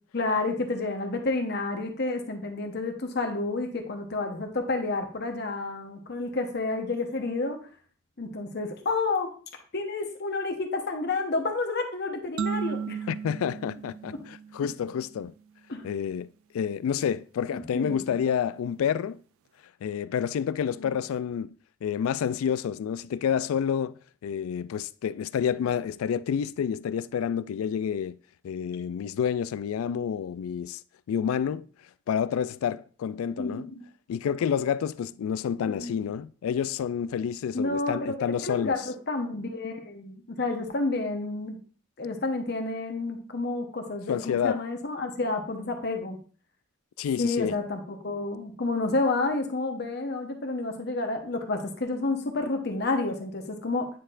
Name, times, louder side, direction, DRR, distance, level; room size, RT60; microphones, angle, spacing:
voice 1, 0.1-7.7 8.2-9.3 9.7-13.0 15.7-15.9 17.7-18.0 20.8-21.0 33.4-33.8 35.7-36.1 37.5-41.6 42.0-46.2 47.2-53.9, left 3 dB, 55° left, 1.0 m, -30 dB
sound 1, 12.4-15.0, right 7 dB, 85° right, 0.3 m, -35 dB
voice 2, 13.1-15.3 15.8-16.3 16.5-19.2 19.8-21.5 21.8-23.9 24.2-28.2 28.4-30.8 31.1-31.7 32.1-33.7 34.1-38.8 44.1-44.6 47.0-47.6, left 8 dB, 90° left, 0.3 m, -29 dB
9.2 x 4.3 x 2.5 m
head